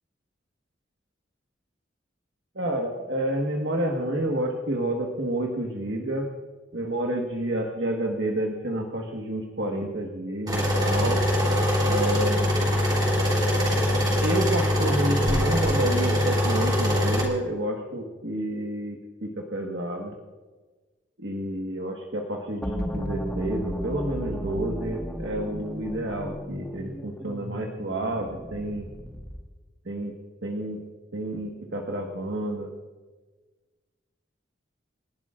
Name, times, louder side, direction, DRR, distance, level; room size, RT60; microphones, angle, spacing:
voice 1, 2.5-6.3 6.7-11.2 11.8-12.7 14.2-20.1 21.2-28.9 29.8-30.1 30.4-30.8 31.1-32.7, right 1 dB, 70° right, 1 dB, 1.5 m, -29 dB
sound 1, 10.5-17.3, left 1 dB, 25° right, 3.4 m, -23 dB
sound 2, 22.6-29.5, equal, 5° left, 1.5 m, -34 dB
29.0 x 12.0 x 2.5 m, 1.3 s
head